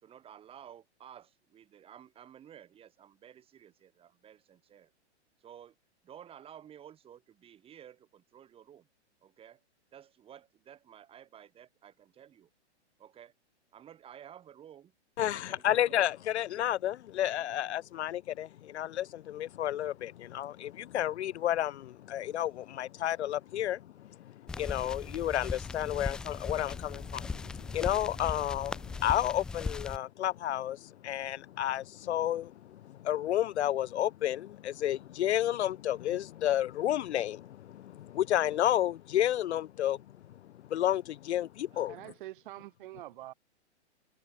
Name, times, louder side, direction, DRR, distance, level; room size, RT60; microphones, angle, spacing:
voice 1, 0.0-4.9 5.4-5.7 6.0-8.9 9.2-9.6 9.9-12.5 13.0-13.3 13.7-14.9 15.3-16.1, right 9 dB, 15° right, 5.8 m, -53 dB
voice 2, 15.2-23.9 24.2-40.0 40.7-42.0, left 12 dB, 70° left, 0.7 m, -31 dB
sound 1, 24.5-30.0, left 4 dB, ahead, 0.4 m, -38 dB
voice 3, 41.7-43.3, right 16 dB, 45° right, 6.1 m, -46 dB
hypercardioid pair, 155°, 35 cm